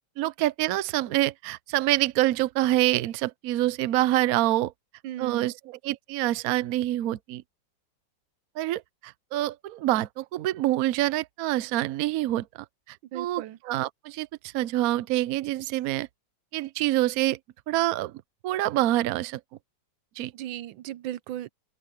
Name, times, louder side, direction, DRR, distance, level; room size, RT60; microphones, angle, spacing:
voice 1, 0.2-4.7 5.2-7.4 8.6-16.1 16.5-17.4 17.7-18.1 18.4-19.4 20.2-20.3, right 15 dB, 65° right, 0.9 m, -26 dB
voice 2, 5.0-5.5 13.1-13.6 20.3-21.5, right 13 dB, 85° right, 1.4 m, -36 dB
open air
omnidirectional pair, 2.1 m